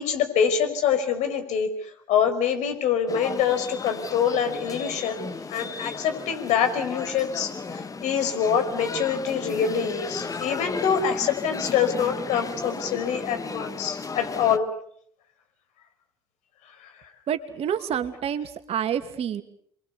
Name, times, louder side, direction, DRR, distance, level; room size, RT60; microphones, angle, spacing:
voice 1, 0.0-1.7 2.1-14.7, left 7 dB, 65° left, 6 dB, 5.4 m, -25 dB
sound 1, 3.1-14.6, left 4 dB, 25° left, 1.6 m, -35 dB
voice 2, 17.3-19.4, right 9 dB, 50° right, 8 dB, 2.6 m, -28 dB
29.0 x 23.5 x 7.0 m, 0.65 s
hypercardioid pair, 65°, 13 cm